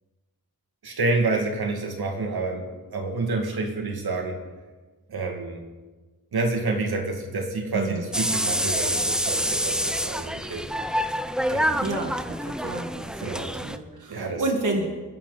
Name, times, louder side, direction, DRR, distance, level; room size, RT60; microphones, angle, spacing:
voice 1, 0.8-4.4 5.1-5.6 6.3-10.6 11.5-12.0 13.2-13.7 14.1-14.8, right 3 dB, 85° right, 2 dB, 2.4 m, -28 dB
voice 2, 7.7-8.1 11.8-12.4 12.6-14.9, right 2 dB, 55° right, 2 dB, 1.9 m, -30 dB
sound 1, 8.1-13.8, equal, ahead, 0.5 m, -27 dB
27.0 x 11.0 x 4.1 m, 1.3 s
wide cardioid pair, 160°, 37 cm